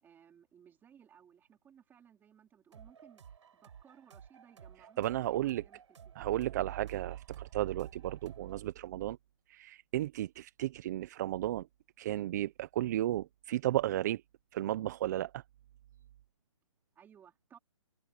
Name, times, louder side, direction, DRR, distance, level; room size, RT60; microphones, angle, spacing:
voice 1, 0.0-3.2 3.5-5.8 6.1-6.3 16.9-17.6, right 8 dB, 10° right, 4.1 m, -60 dB
sound 1, 2.7-8.5, right 7 dB, 60° right, 5.3 m, -56 dB
voice 2, 5.0-5.6 6.2-9.2 9.5-11.7 12.0-14.2 14.5-15.4, right 14 dB, 30° right, 0.7 m, -34 dB
hypercardioid pair, 155°, 18 cm